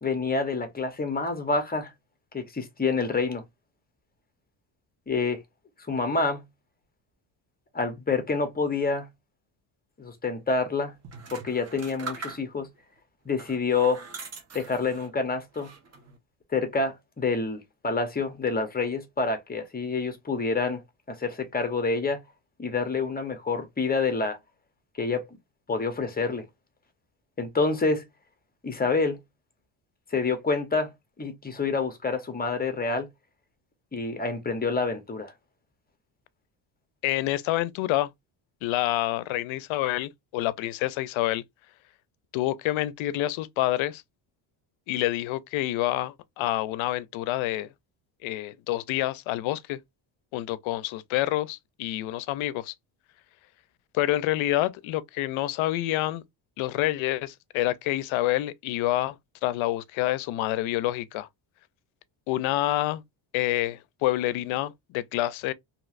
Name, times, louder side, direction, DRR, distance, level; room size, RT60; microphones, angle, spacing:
voice 1, 0.0-1.9 2.3-3.4 5.1-5.4 5.9-6.4 7.7-9.1 10.0-10.9 11.3-12.7 13.2-14.0 14.5-15.7 16.5-20.8 21.1-22.2 22.6-24.4 25.0-25.3 25.7-26.4 27.4-28.0 28.6-29.2 30.1-30.9 31.2-33.1 33.9-35.3, left 4 dB, 20° left, 0.8 m, -27 dB
sound 1, 11.0-12.8 13.3-15.1 15.5-16.2, right 4 dB, 30° right, 0.9 m, -42 dB
voice 2, 37.0-38.1 38.6-41.4 42.3-44.0 44.9-47.7 48.2-49.8 50.3-52.7 53.9-56.2 56.6-59.2 59.4-61.3 62.3-63.0 63.3-65.5, left 15 dB, 75° left, 0.5 m, -27 dB
3.0 x 2.9 x 2.4 m
cardioid pair, 115°, 49 cm